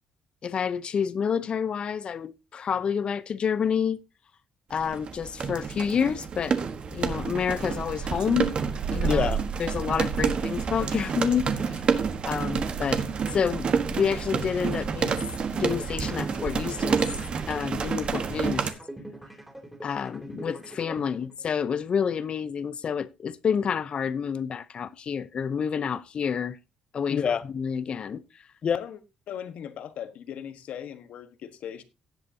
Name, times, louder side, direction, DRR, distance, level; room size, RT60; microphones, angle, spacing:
voice 1, 0.4-4.0 4.7-6.6 6.9-8.5 8.9-11.8 12.3-13.0 13.3-15.1 15.5-17.0 17.5-18.7 19.8-26.6 26.9-28.2 28.6-28.8, left 7 dB, 45° left, 0.7 m, -28 dB
sound 1, 4.7-18.7, right 6 dB, 45° right, 1.3 m, -28 dB
sound 2, 15.7-21.7, right 1 dB, 5° right, 3.0 m, -43 dB
voice 2, 29.3-31.8, left 9 dB, 70° left, 1.3 m, -39 dB
17.5 x 8.1 x 2.8 m
cardioid pair, 115°, 2 cm